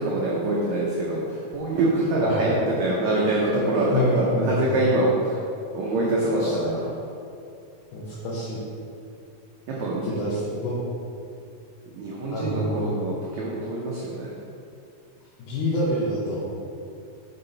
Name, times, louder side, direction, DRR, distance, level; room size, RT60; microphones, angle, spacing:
voice 1, 0.0-5.4 5.7-6.9 9.8-10.0 11.9-14.3, right 2 dB, 85° right, -5 dB, 1.5 m, -24 dB
voice 2, 2.2-2.5 3.9-4.8 6.3-6.9 7.9-8.6 10.0-10.8 12.3-12.8 15.5-16.4, equal, 85° left, -7 dB, 2.9 m, -27 dB
6.1 x 5.7 x 3.9 m, 2.5 s
omnidirectional pair, 4.3 m